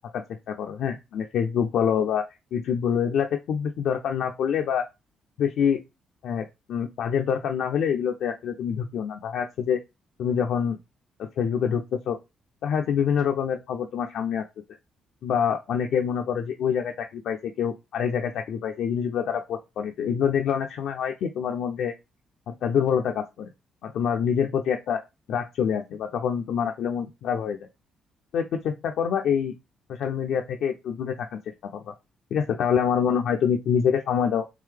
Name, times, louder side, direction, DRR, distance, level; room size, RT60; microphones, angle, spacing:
voice 1, 0.1-2.2 2.5-4.8 5.4-5.8 6.2-9.8 10.2-10.8 11.2-12.2 12.6-14.4 15.2-21.9 22.5-23.5 23.8-25.0 25.3-27.6 28.3-29.6 29.9-31.4 31.7-31.9 32.3-34.4, left 7 dB, 75° left, 4 dB, 0.4 m, -26 dB
3.7 x 2.8 x 3.2 m, 0.24 s
cardioid pair, 90°, 0 cm